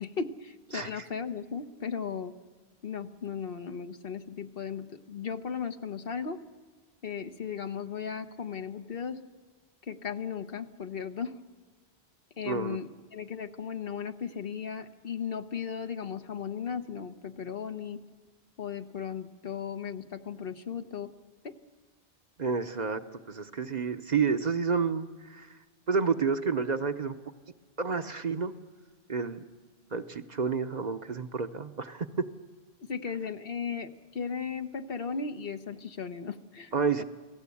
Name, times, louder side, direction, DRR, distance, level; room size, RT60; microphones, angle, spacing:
voice 1, 0.0-2.3 2.8-6.4 7.0-9.2 9.9-11.3 12.4-18.0 18.6-21.1 21.4-21.5 32.8-36.7 37.0-37.1, left 6 dB, 65° left, 8 dB, 1.2 m, -36 dB
voice 2, 12.4-12.8 22.4-23.0 23.3-25.5 25.9-27.1 27.8-28.5 29.1-29.4 29.9-32.1 36.7-37.0, right 5 dB, 45° right, 8 dB, 0.9 m, -29 dB
28.5 x 17.5 x 8.4 m, 1.4 s
omnidirectional pair, 1.1 m